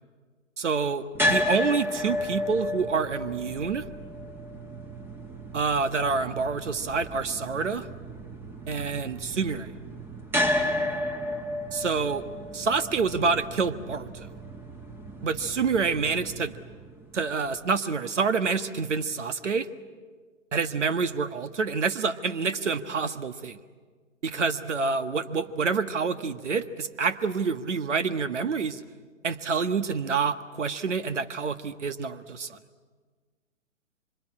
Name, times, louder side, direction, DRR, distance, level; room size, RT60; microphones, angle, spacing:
voice 1, 0.6-3.8 5.5-7.9 8.7-9.7 11.7-12.2 12.5-14.3 15.2-16.5 17.1-19.7 20.5-23.6 24.2-28.8 29.2-32.6, right 5 dB, 65° right, 12 dB, 1.5 m, -27 dB
sound 1, 1.1-17.3, left 1 dB, 5° right, 1.5 m, -33 dB
26.0 x 25.0 x 8.7 m, 1.5 s
figure-of-eight pair, 120°, 39 cm